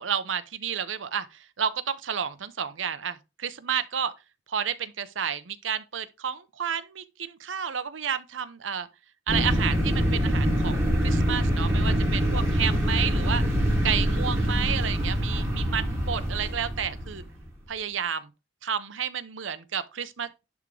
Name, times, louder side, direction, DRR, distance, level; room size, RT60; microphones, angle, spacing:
voice 1, 0.0-4.1 4.5-8.9 9.3-13.4 13.8-17.2 17.7-18.3 18.6-20.4, right 8 dB, 75° right, 0.8 m, -31 dB
sound 1, 9.3-17.5, equal, 15° right, 2.6 m, -25 dB
10.5 x 3.7 x 3.2 m
head